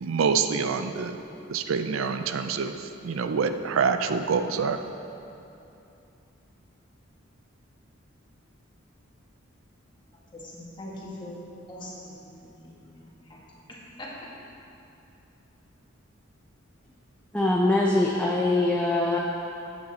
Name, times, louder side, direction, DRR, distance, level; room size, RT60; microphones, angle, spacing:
voice 1, 0.0-1.2 1.5-2.7 3.0-4.8, right 5 dB, 75° right, 8 dB, 0.4 m, -26 dB
voice 2, 10.3-11.4 11.7-14.1, left 1 dB, 25° left, -5 dB, 1.7 m, -43 dB
voice 3, 17.3-19.2, left 2 dB, 5° left, -3 dB, 0.6 m, -23 dB
9.3 x 8.3 x 4.2 m, 2.8 s
head